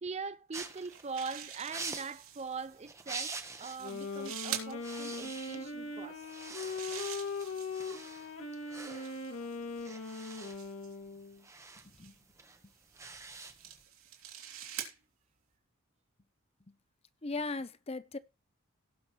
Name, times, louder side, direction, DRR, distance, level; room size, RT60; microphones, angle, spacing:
voice 1, 0.0-6.3, right 4 dB, 30° right, 0.4 m, -42 dB
sound 1, 0.5-3.9 4.2-4.4 4.7-5.9 6.2-13.8, right 4 dB, 15° right, 1.0 m, -46 dB
sound 2, 0.7-2.7 3.5-4.7 6.3-8.0 8.8-10.9 11.8-12.1 12.9-14.9, right 10 dB, 75° right, 2.8 m, -45 dB
Wind instrument woodwind instrument, 3.7-11.4, left 3 dB, 75° left, 2.4 m, -40 dB
voice 2, 17.2-18.2, left 3 dB, 30° left, 0.7 m, -38 dB
17.5 x 6.1 x 3.1 m
head